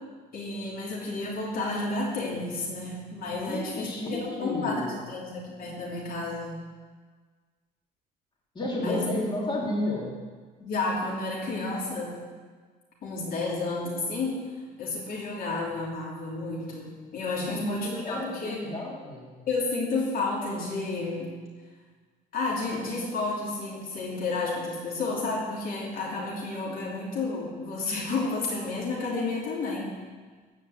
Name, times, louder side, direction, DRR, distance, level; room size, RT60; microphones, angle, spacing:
voice 1, 0.3-6.6 8.8-9.0 10.6-12.2 13.0-14.4 14.8-18.6 19.5-21.3 22.3-29.9, left 3 dB, 60° left, -4 dB, 3.1 m, -31 dB
voice 2, 3.4-5.0 8.5-10.2 17.4-19.4, left 1 dB, 25° left, -4 dB, 3.3 m, -32 dB
14.5 x 5.2 x 7.9 m, 1.5 s
cardioid pair, 110°, 17 cm